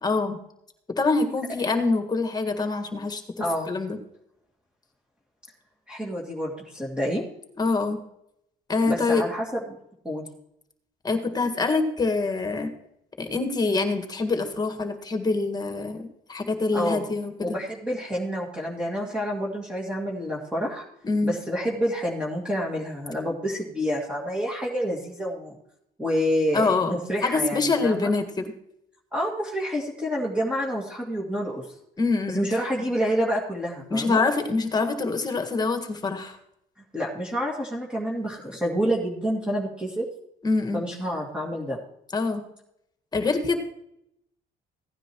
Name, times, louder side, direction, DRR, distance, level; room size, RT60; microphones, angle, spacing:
voice 1, 0.0-0.4 1.0-3.2 3.7-4.0 7.6-8.0 8.7-9.2 11.0-12.7 13.2-17.6 21.0-21.3 26.5-27.0 27.2-28.5 32.0-32.5 33.9-36.4 40.4-40.8 42.1-42.4 43.1-43.6, left 3 dB, 25° left, 7 dB, 1.8 m, -25 dB
voice 2, 5.9-7.2 8.8-9.5 10.0-10.3 16.7-17.1 17.4-20.8 21.2-25.6 26.0-28.1 29.1-31.6 32.3-34.2 36.9-40.1 40.7-41.8, equal, 5° right, -4 dB, 2.3 m, -28 dB
16.5 x 9.9 x 3.1 m, 0.77 s
cardioid pair, 110°, 17 cm